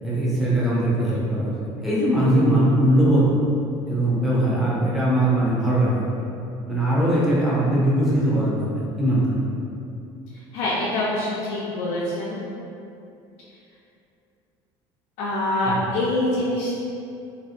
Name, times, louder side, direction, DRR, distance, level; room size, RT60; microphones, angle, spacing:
voice 1, 0.0-3.2 3.8-6.0 6.7-8.7 9.0-9.5 15.7-15.8, right 1 dB, ahead, -8 dB, 0.6 m, -20 dB
voice 2, 10.5-12.4 15.2-16.7, left 1 dB, 80° left, -7 dB, 0.4 m, -25 dB
2.5 x 2.0 x 2.7 m, 2.6 s
cardioid pair, 140°, 11 cm